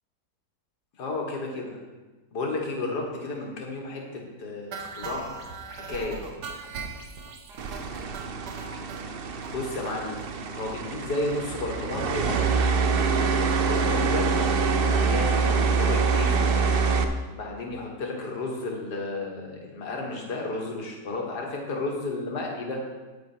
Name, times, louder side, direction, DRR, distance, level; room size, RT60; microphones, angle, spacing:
voice 1, 1.0-1.8 2.3-5.4 5.7-6.2 9.5-12.4 13.6-14.3 14.8-15.5 15.8-16.5 17.3-22.8, left 2 dB, 80° left, 0 dB, 2.3 m, -32 dB
sound 1, 4.7-9.0 9.4-9.5 9.9-10.0 10.2-10.3 10.6-10.7, right 5 dB, 80° right, 1.6 m, -39 dB
sound 2, 7.6-17.0, right 5 dB, 60° right, 0.6 m, -25 dB
9.5 x 8.8 x 4.5 m, 1.2 s
omnidirectional pair, 1.7 m